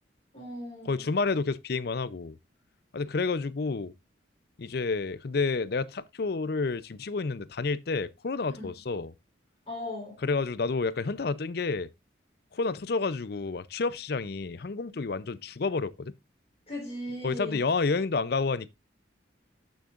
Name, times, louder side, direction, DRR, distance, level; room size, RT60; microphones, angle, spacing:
voice 1, 0.3-1.1 8.6-8.7 9.7-10.2 16.7-17.6, left 1 dB, 30° left, 3.6 m, -38 dB
voice 2, 0.8-2.4 2.9-3.9 4.6-9.1 10.2-11.9 12.5-16.1 17.2-18.7, left 4 dB, 55° left, 0.5 m, -30 dB
12.5 x 6.4 x 2.5 m
head